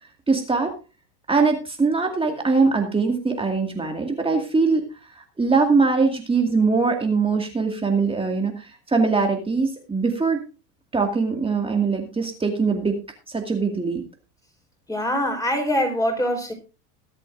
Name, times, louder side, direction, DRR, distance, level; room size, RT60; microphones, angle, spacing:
voice 1, 0.3-0.7 1.3-4.9 5.1-10.4 10.9-13.0 13.3-14.0, right 4 dB, 10° right, 2.1 m, -22 dB
voice 2, 14.9-16.5, equal, 5° left, 4.5 m, -23 dB
22.0 x 8.2 x 2.6 m
supercardioid pair, 120°, 48 cm